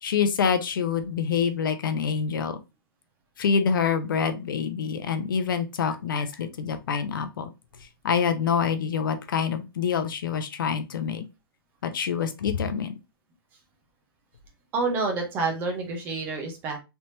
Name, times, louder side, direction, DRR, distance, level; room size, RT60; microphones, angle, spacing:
voice 1, 0.0-2.6 3.4-7.5 8.0-11.2 11.8-12.9, left 6 dB, 60° left, 8 dB, 0.6 m, -26 dB
voice 2, 14.7-16.8, right 3 dB, 15° right, 2 dB, 0.6 m, -28 dB
3.3 x 2.9 x 2.7 m, 0.25 s
hypercardioid pair, 165°, 12 cm